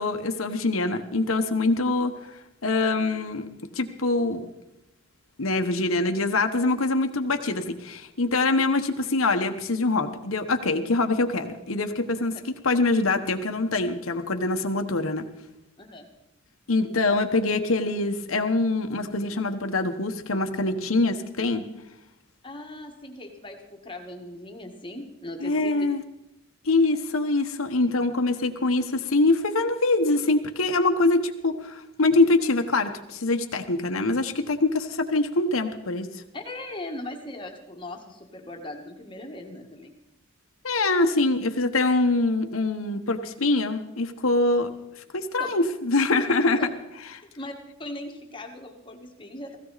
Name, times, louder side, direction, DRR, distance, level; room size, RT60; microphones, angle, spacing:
voice 1, 0.0-2.1 2.6-3.5 3.7-4.4 5.4-12.4 12.6-15.3 16.7-21.6 25.4-26.0 26.6-36.2 40.6-44.7 45.1-46.7, left 2 dB, 80° left, 5 dB, 1.2 m, -24 dB
voice 2, 22.4-25.9 36.3-39.9 45.4-45.5 47.2-47.5 47.8-49.6, left 1 dB, 25° left, 3 dB, 1.6 m, -39 dB
16.5 x 16.5 x 4.1 m, 0.87 s
head